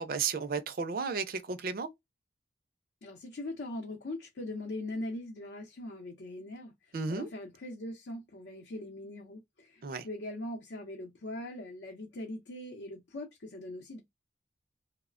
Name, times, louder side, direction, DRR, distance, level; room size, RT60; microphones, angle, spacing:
voice 1, 0.0-1.9 6.9-7.3 9.8-10.1, right 5 dB, 50° right, 0.4 m, -33 dB
voice 2, 3.0-14.0, left 1 dB, 75° left, 0.6 m, -41 dB
3.1 x 2.1 x 2.3 m
head